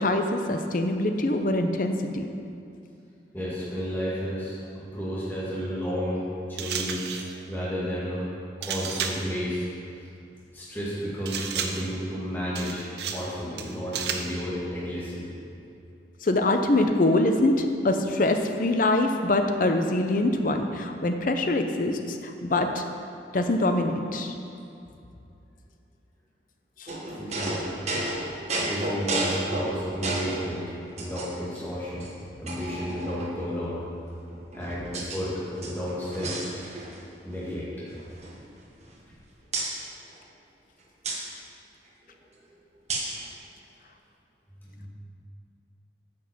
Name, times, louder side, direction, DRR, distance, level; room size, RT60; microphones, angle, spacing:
voice 1, 0.0-2.3 16.2-22.8 23.3-24.3 26.8-26.9, left 2 dB, 45° left, 5 dB, 0.7 m, -24 dB
voice 2, 3.3-6.2 6.5-8.2 8.6-9.7 10.5-15.3 27.2-27.8 28.6-30.6 31.0-32.1 32.4-33.8 34.5-36.6 37.2-37.6 44.6-44.9, equal, 10° left, -9 dB, 2.1 m, -32 dB
sound 1, 6.6-7.4 8.6-9.3 11.3-11.9 12.5-13.3 13.6-14.4, right 7 dB, 65° right, 0.7 m, -32 dB
sound 2, 26.9-30.4 31.0-31.6 32.0-32.1 32.5-33.5 34.3-35.2 35.5-37.1 37.3-37.5 37.9-39.1 39.5-39.7 41.0-41.2 42.9-43.2, right 2 dB, 40° right, 1.2 m, -32 dB
9.2 x 5.5 x 7.1 m, 2.6 s
head